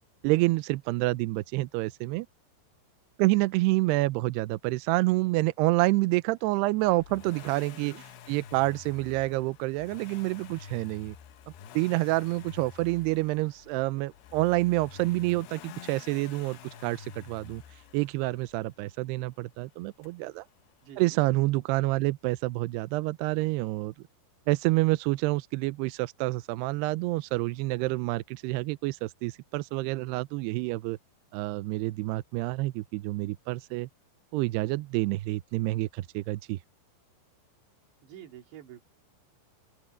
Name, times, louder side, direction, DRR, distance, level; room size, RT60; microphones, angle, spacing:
voice 1, 0.2-2.3 3.2-7.9 8.3-11.2 11.7-17.6 17.9-20.4 21.0-23.9 24.5-31.0 31.3-33.9 34.3-36.6, right 20 dB, 90° right, 2.3 m, -28 dB
Accelerating revving vroom, 6.8-18.7 20.0-20.1, left 8 dB, 70° left, 2.9 m, -49 dB
voice 2, 7.7-8.0 20.8-21.2 38.0-38.8, right 10 dB, 70° right, 4.2 m, -48 dB
open air
omnidirectional pair, 5.5 m